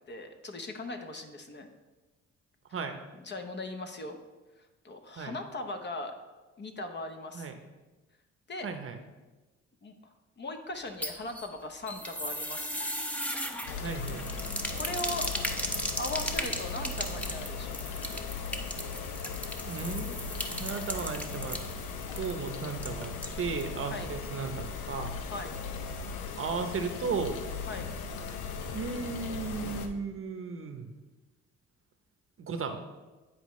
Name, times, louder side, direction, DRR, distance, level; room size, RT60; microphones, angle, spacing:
voice 1, 0.1-1.7 3.2-4.2 4.8-6.1 6.6-7.5 8.5-8.7 9.8-9.9 10.4-12.8 14.7-15.5 16.0-17.8 23.9-24.1 25.3-25.6 27.7-27.9, left 2 dB, 35° left, 6 dB, 0.8 m, -39 dB
voice 2, 8.6-9.0 13.8-14.3 19.6-20.2 20.5-21.6 22.1-25.1 26.4-27.3 28.7-30.9 32.4-32.8, right 5 dB, 45° right, 7 dB, 0.8 m, -35 dB
sound 1, 10.8-23.7 24.0-24.1 24.4-24.5, equal, 5° left, 0.7 m, -37 dB
sound 2, 13.7-29.9, left 5 dB, 80° left, 0.7 m, -38 dB
10.0 x 4.6 x 3.1 m, 1.2 s
cardioid pair, 90°, 30 cm